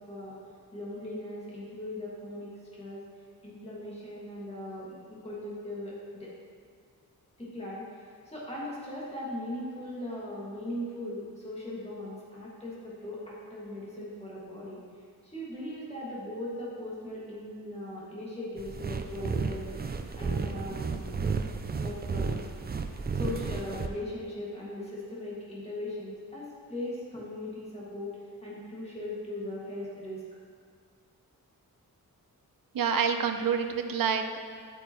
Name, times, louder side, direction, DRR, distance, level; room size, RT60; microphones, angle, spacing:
voice 1, 0.0-3.1 3.4-6.3 7.4-14.8 15.2-19.7 20.1-21.2 21.8-22.3 23.1-30.2, left 1 dB, 15° left, -7 dB, 2.1 m, -39 dB
sound 1, 18.6-23.9, right 4 dB, 30° right, 0.4 m, -33 dB
voice 2, 32.7-34.4, right 6 dB, 65° right, 7 dB, 0.7 m, -27 dB
10.5 x 8.8 x 3.1 m, 2.2 s
wide cardioid pair, 170°, 36 cm